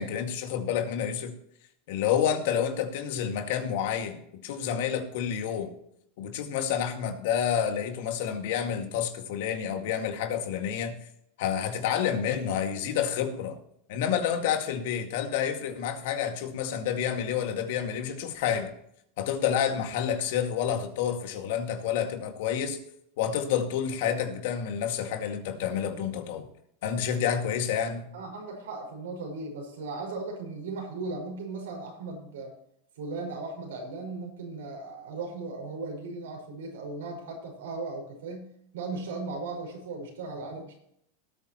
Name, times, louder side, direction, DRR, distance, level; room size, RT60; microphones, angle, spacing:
voice 1, 0.0-1.3 1.9-5.7 6.2-11.0 11.4-13.6 13.9-18.7 19.2-22.8 23.2-26.5 26.8-28.1, left 8 dB, 65° left, 2.1 m, -29 dB
voice 2, 28.1-32.5 33.0-38.5 38.7-40.7, right 3 dB, 85° right, 5.6 m, -37 dB
18.5 x 8.9 x 3.0 m
supercardioid pair, 125°, 0 cm